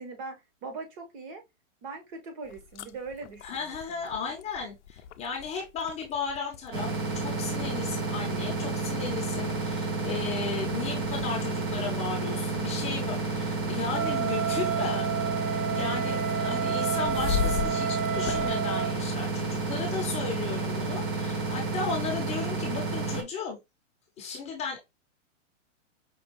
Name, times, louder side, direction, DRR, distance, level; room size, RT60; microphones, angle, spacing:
voice 1, 0.0-1.4 1.8-4.3, right 4 dB, 40° right, 1.1 m, -41 dB
sound 1, 2.4-19.6, left 8 dB, 60° left, 0.5 m, -40 dB
voice 2, 3.4-15.1 15.4-23.6 24.2-24.8, left 5 dB, 15° left, 0.7 m, -35 dB
sound 2, 6.7-23.2, right 3 dB, 20° right, 0.4 m, -31 dB
Wind instrument woodwind instrument, 13.9-18.9, right 8 dB, 75° right, 0.7 m, -30 dB
5.2 x 2.3 x 3.0 m
hypercardioid pair, 140°, 39 cm